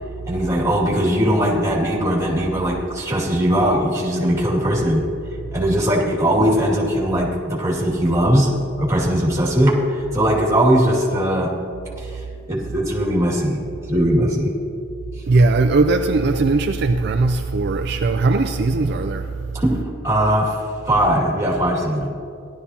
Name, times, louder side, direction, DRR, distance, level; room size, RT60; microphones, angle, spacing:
voice 1, 0.2-5.0 5.5-8.5 8.8-11.5 11.9-13.6 13.9-14.5 18.8-18.9 19.5-19.8 20.0-20.6 20.9-22.1, equal, 15° right, 2.2 m, -19 dB
voice 2, 15.3-19.3, right 3 dB, 55° right, 0.4 m, -18 dB
16.5 x 12.0 x 2.8 m
head